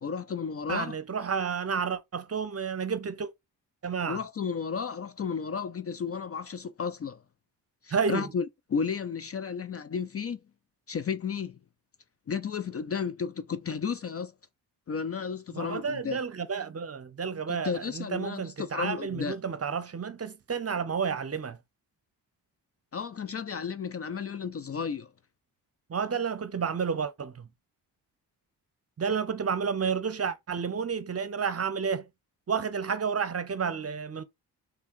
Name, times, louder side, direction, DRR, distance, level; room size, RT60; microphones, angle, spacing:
voice 1, 0.0-1.0 4.1-7.2 7.8-10.4 10.9-11.6 12.3-14.3 14.9-16.2 17.5-19.4 22.9-25.1, left 6 dB, 35° left, 0.5 m, -33 dB
voice 2, 0.7-3.3 3.8-4.2 7.9-8.3 15.5-21.6 25.9-27.5 29.0-32.0 32.5-34.2, right 6 dB, 35° right, 0.8 m, -31 dB
3.5 x 3.4 x 4.4 m
cardioid pair, 60°, 42 cm